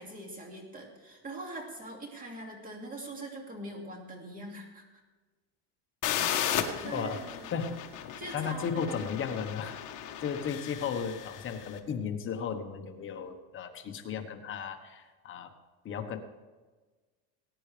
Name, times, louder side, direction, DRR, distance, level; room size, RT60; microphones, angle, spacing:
voice 1, 0.0-4.8 6.2-7.5 8.2-9.2, right 2 dB, 20° right, 2 dB, 2.4 m, -43 dB
sound 1, 6.0-11.7, left 10 dB, 45° left, 1.4 m, -35 dB
voice 2, 8.3-9.8 10.2-15.5 15.8-16.2, left 7 dB, 25° left, 5 dB, 1.1 m, -35 dB
19.5 x 9.9 x 3.3 m, 1.3 s
cardioid pair, 150°, 45 cm